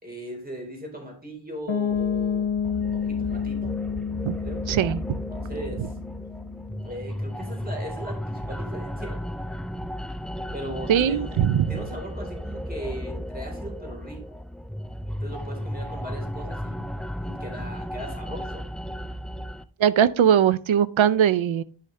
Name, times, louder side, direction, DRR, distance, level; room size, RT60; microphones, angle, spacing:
voice 1, 0.0-2.5 2.9-3.7 4.4-4.6 5.3-5.9 6.8-9.2 10.5-14.4 15.2-16.8 17.2-18.6, right 1 dB, 20° right, 3.9 m, -38 dB
Piano, 1.7-7.4, left 7 dB, 80° left, 1.0 m, -30 dB
sound 1, 1.9-7.8 8.2-13.5 13.7-13.9 14.9-19.5, right 1 dB, 55° right, 3.6 m, -44 dB
sound 2, 2.6-19.6, equal, ahead, 0.4 m, -35 dB
voice 2, 4.7-5.0 10.9-11.7 19.8-21.6, right 9 dB, 80° right, 0.6 m, -20 dB
10.5 x 6.5 x 3.3 m
cardioid pair, 60°, 46 cm